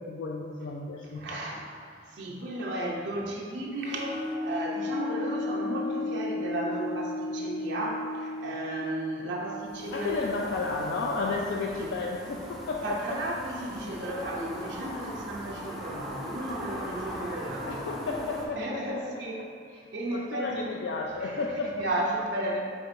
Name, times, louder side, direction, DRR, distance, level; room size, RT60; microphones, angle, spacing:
voice 1, 0.0-1.4 2.0-2.1 9.9-13.2 17.7-19.0 19.4-19.5 20.1-21.9, left 3 dB, 75° left, -1 dB, 0.3 m, -32 dB
voice 2, 1.1-10.1 11.8-11.9 12.8-17.9 18.5-19.4 19.7-20.6 21.2-21.3 21.8-22.6, right 1 dB, 70° right, -3 dB, 0.6 m, -34 dB
sound 1, 3.8-11.3, left 2 dB, 35° left, 0.9 m, -35 dB
sound 2, 9.6-18.5, equal, ahead, 0.4 m, -40 dB
4.6 x 4.3 x 2.5 m, 2.1 s
head